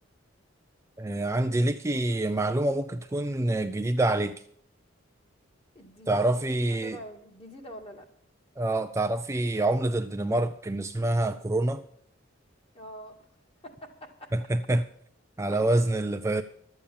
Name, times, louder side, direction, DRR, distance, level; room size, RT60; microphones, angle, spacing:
voice 1, 1.0-4.3 6.1-7.0 8.6-11.8 14.3-14.8 15.4-16.4, right 2 dB, 15° right, 0.4 m, -26 dB
voice 2, 5.7-8.1 12.7-13.3 13.6-14.3, equal, 30° left, 2.0 m, -45 dB
12.0 x 8.4 x 7.2 m
head